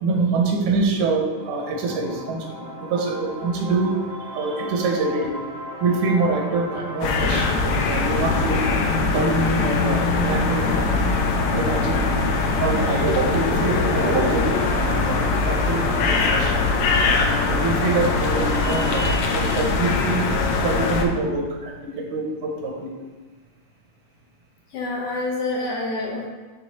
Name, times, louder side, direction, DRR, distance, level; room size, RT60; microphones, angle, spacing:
voice 1, 0.0-5.4 5.8-8.7 9.1-10.9 11.5-12.0 12.6-16.6 17.1-20.3 20.6-22.9, right 3 dB, 85° right, 1 dB, 2.3 m, -25 dB
Road In The Forest, 1.4-19.0, left 1 dB, 20° right, 0.6 m, -35 dB
sound 1, 7.0-21.1, left 3 dB, 85° left, 1.3 m, -22 dB
voice 2, 24.7-26.3, left 2 dB, 70° left, -2 dB, 1.4 m, -28 dB
8.3 x 3.6 x 4.1 m, 1.4 s
omnidirectional pair, 3.4 m